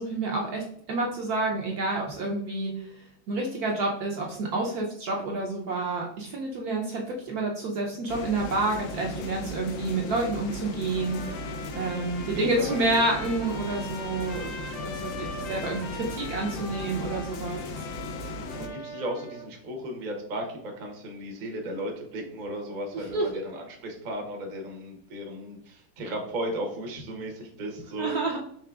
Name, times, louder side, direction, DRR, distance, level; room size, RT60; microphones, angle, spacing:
voice 1, 0.0-2.9 3.3-11.2 11.8-14.5 14.9-17.8 22.9-23.4 28.0-28.4, right 2 dB, 70° right, -1 dB, 0.9 m, -29 dB
sound 1, 8.1-18.7, left 1 dB, 80° left, 1.3 m, -37 dB
Trumpet, 10.9-19.5, left 3 dB, 60° left, 0.9 m, -41 dB
voice 2, 12.3-12.7 18.6-28.1, right 1 dB, 45° right, 2 dB, 0.6 m, -35 dB
4.7 x 3.2 x 2.3 m, 0.67 s
omnidirectional pair, 2.0 m